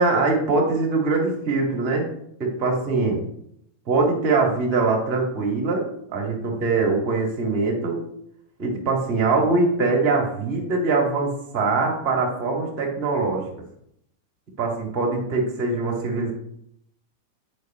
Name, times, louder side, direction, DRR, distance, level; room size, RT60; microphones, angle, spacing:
voice 1, 0.0-2.1 2.4-3.2 3.9-5.9 6.1-8.0 8.6-13.4 14.6-16.3, right 3 dB, 40° right, 0 dB, 2.0 m, -22 dB
9.1 x 5.5 x 3.1 m, 0.72 s
figure-of-eight pair, 90°, 0 cm